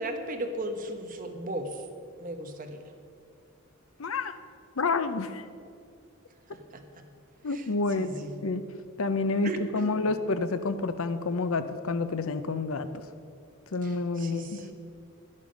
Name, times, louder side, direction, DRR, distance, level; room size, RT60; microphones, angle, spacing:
voice 1, 0.0-1.8 2.2-2.8 6.5-7.0 7.5-7.6 7.9-8.4 9.4-10.1 13.8-14.7, right 1 dB, 40° right, 5 dB, 1.1 m, -36 dB
voice 2, 4.0-4.4 4.8-5.5 7.4-8.1 8.4-8.6 9.0-12.9 13.7-14.6, left 3 dB, 90° left, 11 dB, 0.7 m, -29 dB
11.5 x 10.5 x 5.3 m, 2.3 s
head